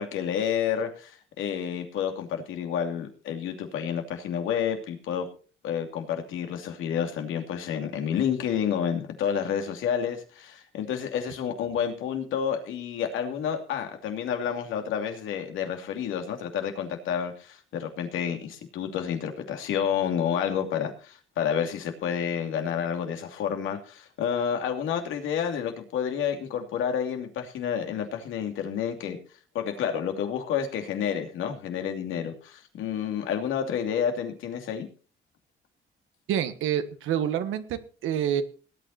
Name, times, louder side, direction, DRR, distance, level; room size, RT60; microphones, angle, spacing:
voice 1, 0.0-5.3 5.6-29.2 29.5-34.9, left 8 dB, 85° left, 5 dB, 2.7 m, -29 dB
voice 2, 36.3-38.4, right 9 dB, 85° right, 9 dB, 1.6 m, -27 dB
18.5 x 9.4 x 4.3 m, 0.37 s
cardioid pair, 90°, 20 cm